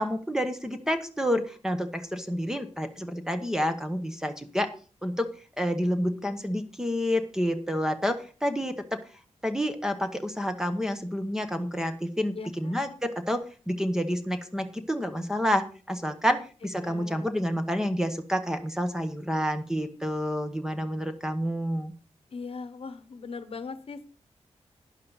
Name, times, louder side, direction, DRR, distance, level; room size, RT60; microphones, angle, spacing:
voice 1, 0.0-4.7 5.0-9.0 9.4-21.9, equal, 5° right, 7 dB, 0.9 m, -29 dB
voice 2, 12.3-12.7 16.3-16.4 16.8-17.2 22.3-24.1, left 4 dB, 55° left, 12 dB, 1.0 m, -39 dB
11.5 x 10.0 x 4.0 m, 0.38 s
wide cardioid pair, 175°, 12 cm